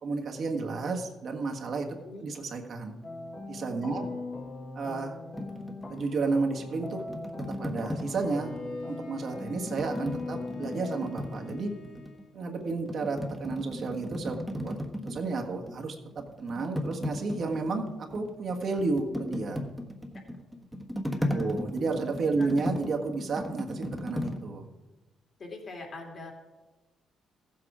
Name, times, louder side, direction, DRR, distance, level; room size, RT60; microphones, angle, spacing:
voice 1, 0.0-1.9 2.2-2.9 3.5-4.1 4.7-5.2 5.9-7.0 7.6-8.6 8.8-11.7 12.3-14.7 15.0-15.9 16.4-19.6 21.3-24.7, right 3 dB, 55° right, 2 dB, 1.5 m, -32 dB
sound 1, 3.0-11.0, left 3 dB, 25° left, 1.2 m, -40 dB
voice 2, 3.9-4.2 20.1-20.2 21.2-21.5 22.4-22.5 25.4-26.3, left 2 dB, 50° left, 1 dB, 3.0 m, -43 dB
sound 2, 5.3-8.8 9.5-12.2 12.6-15.9 16.1-24.4, left 1 dB, ahead, 1.3 m, -36 dB
Bowed string instrument, 8.0-12.4, left 4 dB, 80° left, 2.1 m, -50 dB
14.5 x 7.7 x 4.9 m, 1.1 s
cardioid pair, 90°, 0 cm